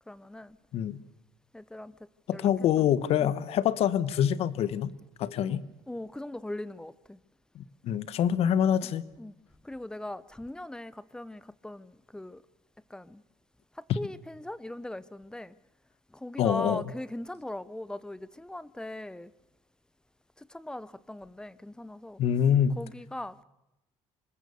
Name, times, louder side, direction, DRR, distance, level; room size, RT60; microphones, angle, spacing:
voice 1, 0.1-0.6 1.5-2.5 2.8-2.9 3.2-3.3 5.5-5.6 5.9-7.2 8.8-9.3 9.6-12.4 12.9-13.2 13.7-15.6 16.1-19.3 20.4-22.2 22.8-23.4, left 1 dB, 5° left, 0.8 m, -40 dB
voice 2, 2.3-4.9 5.2-5.6 7.5-9.0 13.9-14.0 16.4-16.8 22.2-22.8, left 9 dB, 60° left, 1.1 m, -25 dB
26.0 x 20.0 x 6.9 m
cardioid pair, 115°, 12 cm